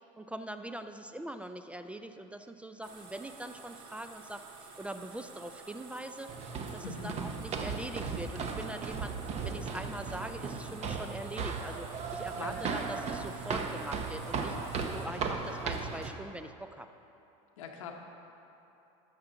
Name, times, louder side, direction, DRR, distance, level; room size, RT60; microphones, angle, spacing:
voice 1, 0.2-4.4 4.8-6.3 6.7-9.2 9.4-16.9, right 1 dB, 5° right, 8 dB, 0.3 m, -42 dB
sound 1, 2.8-15.1, right 4 dB, 65° right, 1.3 m, -51 dB
sound 2, 6.3-16.1, right 5 dB, 40° right, 0.8 m, -36 dB
voice 2, 6.8-7.2 12.3-12.9 14.6-14.8 17.6-17.9, left 5 dB, 90° left, 2 dB, 1.0 m, -43 dB
12.0 x 6.0 x 3.8 m, 2.9 s
supercardioid pair, 100°, 17 cm